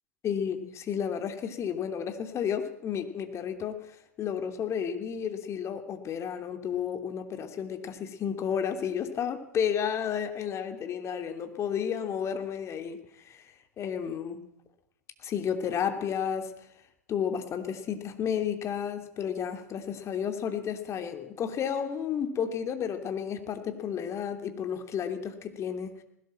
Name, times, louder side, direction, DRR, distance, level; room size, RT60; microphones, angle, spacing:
voice 1, 0.2-3.8 4.2-13.4 13.8-14.4 15.2-16.5 17.1-25.9, left 8 dB, 35° left, 6 dB, 3.1 m, -32 dB
20.0 x 17.0 x 7.7 m, 0.80 s
hypercardioid pair, 95°, 9 cm